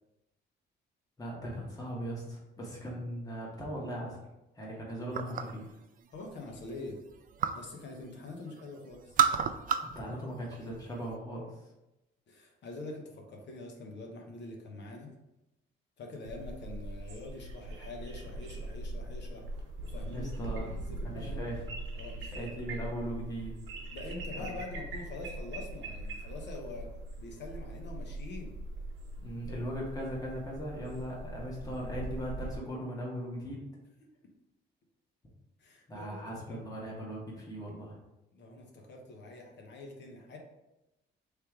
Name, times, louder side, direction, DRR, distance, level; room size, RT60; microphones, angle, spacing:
voice 1, 1.2-4.2 4.5-5.7 9.8-11.7 20.1-20.7 21.0-21.6 22.3-23.6 24.3-24.5 29.2-33.7 35.9-38.0, equal, 20° left, -4 dB, 1.4 m, -39 dB
sound 1, 5.1-5.7 6.1-7.7 8.0-8.6 8.9-10.0 10.3-11.1, right 7 dB, 45° right, 0.4 m, -30 dB
voice 2, 6.1-7.0 7.5-9.2 12.3-15.1 16.0-19.4 19.8-21.5 21.9-22.5 23.9-26.9 27.2-28.6 35.6-36.2 36.5-36.6 38.3-40.4, left 2 dB, 65° left, 2 dB, 0.9 m, -45 dB
sound 2, 16.3-32.6, right 1 dB, 80° right, 1.0 m, -41 dB
3.3 x 3.2 x 4.6 m, 0.94 s
cardioid pair, 90°, 20 cm